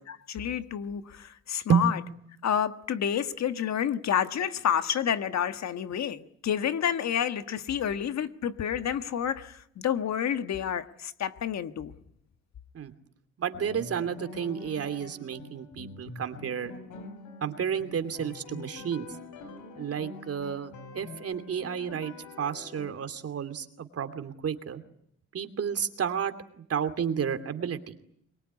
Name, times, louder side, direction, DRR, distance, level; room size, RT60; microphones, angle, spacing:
voice 1, 0.1-2.0 2.4-11.9, left 9 dB, 60° left, 1.6 m, -29 dB
voice 2, 13.4-16.7 17.4-19.1 19.8-24.8 25.3-28.0, right 7 dB, 50° right, 2.8 m, -31 dB
sound 1, 13.5-23.0, left 3 dB, 85° left, 5.3 m, -45 dB
24.0 x 22.5 x 9.8 m
cardioid pair, 90°, 30 cm